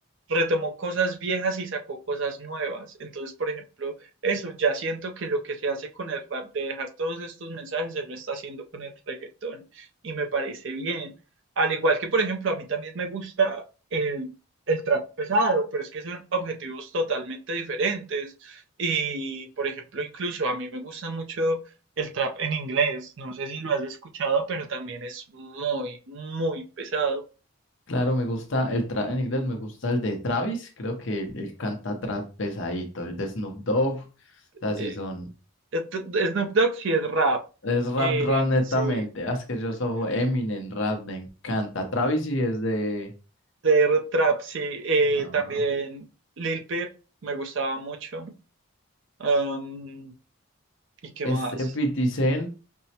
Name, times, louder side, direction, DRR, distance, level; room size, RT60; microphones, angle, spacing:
voice 1, 0.3-3.9 4.2-9.2 9.4-11.1 11.6-13.6 13.9-14.3 14.7-21.6 22.0-27.2 34.8-35.0 35.7-37.4 38.0-38.4 38.8-39.0 43.6-46.1 46.4-46.9 47.2-48.3 49.2-50.1 51.0-51.5, right 3 dB, 60° right, 4 dB, 0.5 m, -27 dB
voice 2, 27.9-34.1 34.6-35.3 37.6-43.1 45.2-45.4 51.2-52.5, left 1 dB, 60° left, 4 dB, 0.8 m, -27 dB
5.3 x 2.1 x 2.8 m, 0.34 s
head